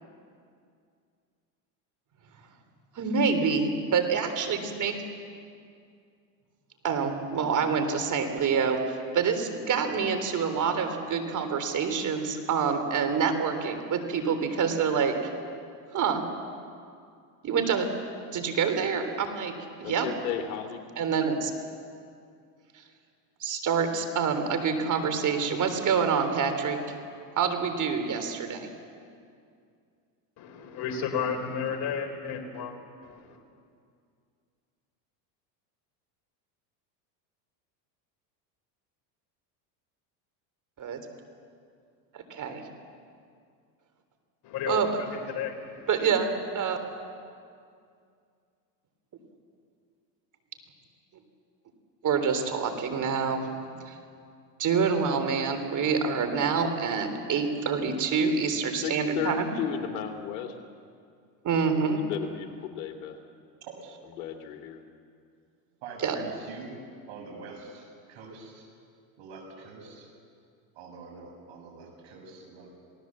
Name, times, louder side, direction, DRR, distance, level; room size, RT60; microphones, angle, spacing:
voice 1, 2.9-5.0 6.8-15.2 15.9-16.2 17.4-17.9 18.3-19.5 19.8-20.1 21.0-21.5 23.4-26.8 27.4-28.7 40.8-41.0 42.1-42.6 44.7-44.9 45.9-46.8 52.0-53.5 53.9-54.0 54.6-59.5 61.4-62.0 66.0-66.2, right 6 dB, 35° right, 8 dB, 3.4 m, -27 dB
voice 2, 19.8-20.8 58.8-60.6 62.1-63.2 64.2-64.8, left 8 dB, 75° left, 5 dB, 2.8 m, -34 dB
voice 3, 30.4-32.7 33.0-33.4 44.4-45.9, left 6 dB, 50° left, 5 dB, 3.9 m, -33 dB
voice 4, 65.8-66.8 67.1-68.7 69.2-70.1 70.8-72.7, right 4 dB, 60° right, 2 dB, 7.2 m, -45 dB
27.5 x 18.5 x 7.5 m, 2.3 s
supercardioid pair, 110°, 50 cm